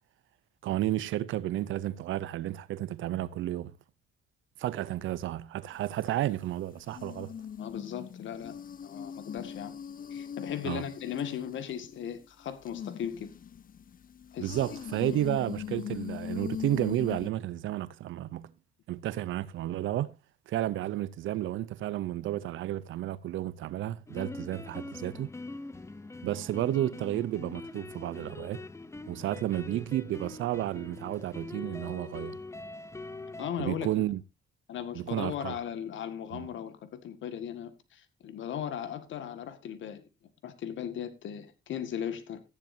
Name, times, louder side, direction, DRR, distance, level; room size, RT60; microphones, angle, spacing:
voice 1, 0.6-3.7 4.6-7.3 10.6-10.8 14.4-18.5 18.9-20.1 20.5-25.3 26.2-28.6 29.1-32.4 33.6-34.2 34.9-35.6 36.3-36.5, right 13 dB, 75° right, 0.6 m, -32 dB
sound 1, 5.7-6.0 6.8-12.1 12.7-17.3, left 8 dB, 45° left, 0.7 m, -40 dB
voice 2, 7.6-8.5 8.8-9.8 10.1-13.3 14.3-14.6 15.1-15.2 33.4-33.9 34.7-40.0 40.4-42.4, left 9 dB, 75° left, 1.9 m, -37 dB
sound 2, 24.1-33.5, left 2 dB, 15° left, 0.8 m, -43 dB
14.0 x 10.5 x 2.7 m
cardioid pair, 90°, 20 cm